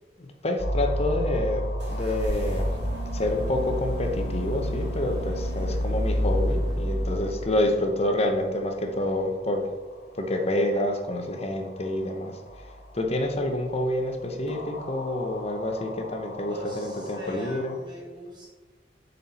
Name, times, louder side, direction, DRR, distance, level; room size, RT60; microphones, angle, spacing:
voice 1, 0.2-2.7 3.1-9.7 10.1-12.3 12.9-17.8, left 1 dB, 35° left, 5 dB, 0.8 m, -28 dB
sound 1, 0.6-17.8, equal, 70° left, 1.0 m, -37 dB
sound 2, 1.8-7.7, equal, 75° right, 1.5 m, -29 dB
voice 2, 5.4-6.1 6.5-6.8 16.5-18.5, equal, 25° right, -5 dB, 2.0 m, -42 dB
7.2 x 4.3 x 4.2 m, 1.2 s
head